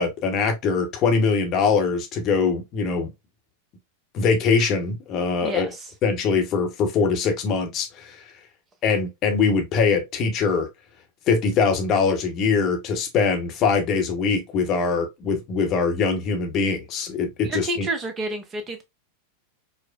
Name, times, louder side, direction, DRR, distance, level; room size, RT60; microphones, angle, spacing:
voice 1, 0.0-3.1 4.1-5.7 6.0-8.2 8.8-10.7 11.3-17.9, left 5 dB, 35° left, 0.8 m, -22 dB
voice 2, 17.4-18.8, right 2 dB, 25° right, 0.7 m, -29 dB
4.7 x 2.1 x 2.3 m
figure-of-eight pair, 90°, 0 cm